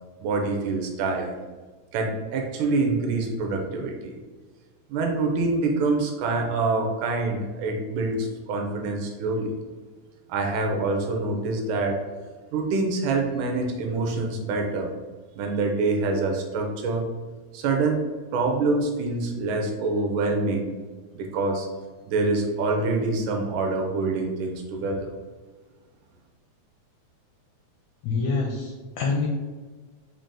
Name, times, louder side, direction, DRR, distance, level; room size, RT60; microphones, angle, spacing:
voice 1, 0.2-1.3 1.9-4.2 4.9-9.5 10.3-12.0 12.5-14.9 15.3-17.1 17.5-18.1 18.3-20.7 21.1-21.7 22.1-25.1, right 3 dB, 80° right, 2 dB, 2.1 m, -26 dB
voice 2, 28.0-29.3, left 4 dB, 80° left, -1 dB, 1.6 m, -26 dB
5.3 x 2.6 x 3.7 m, 1.4 s
omnidirectional pair, 3.7 m